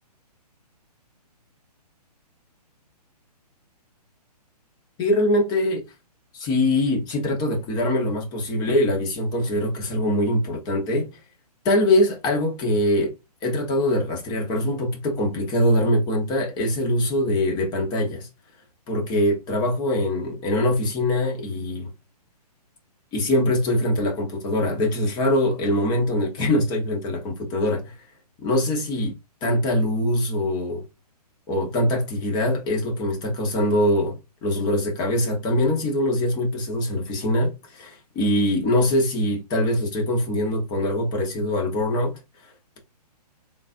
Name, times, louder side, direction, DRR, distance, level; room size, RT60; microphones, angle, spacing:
voice 1, 5.0-5.8 6.3-11.1 11.6-13.1 13.4-18.3 18.9-21.9 23.1-27.9 28.4-29.1 29.4-30.8 31.5-34.1 34.4-42.2, left 1 dB, 20° left, 1.0 m, -23 dB
3.7 x 2.5 x 2.5 m
hypercardioid pair, 145°, 21 cm